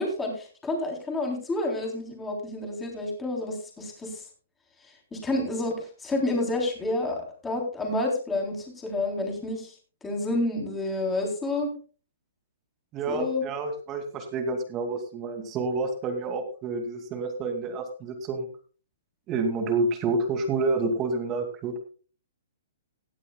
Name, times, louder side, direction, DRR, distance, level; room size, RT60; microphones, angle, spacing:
voice 1, 0.0-4.2 5.1-9.7 10.0-11.7 13.1-13.4, left 2 dB, 10° left, 1 dB, 3.7 m, -29 dB
voice 2, 12.9-18.5 19.3-21.8, right 3 dB, 25° right, 6 dB, 2.5 m, -29 dB
18.0 x 12.5 x 2.3 m, 0.38 s
hypercardioid pair, 150°, 0 cm